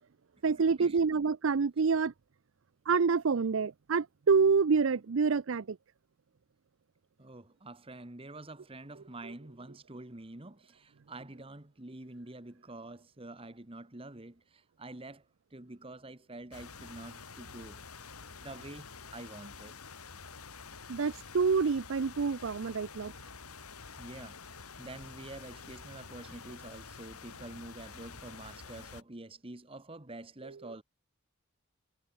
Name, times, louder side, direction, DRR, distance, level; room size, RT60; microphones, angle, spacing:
voice 1, 0.4-2.1 2.9-5.8 20.9-23.1, right 5 dB, 60° right, 0.5 m, -27 dB
voice 2, 7.2-15.2 15.5-17.8 18.4-19.8 24.0-24.4 24.8-30.8, right 2 dB, 25° right, 1.3 m, -47 dB
sound 1, 16.5-29.0, left 5 dB, 90° left, 3.2 m, -48 dB
head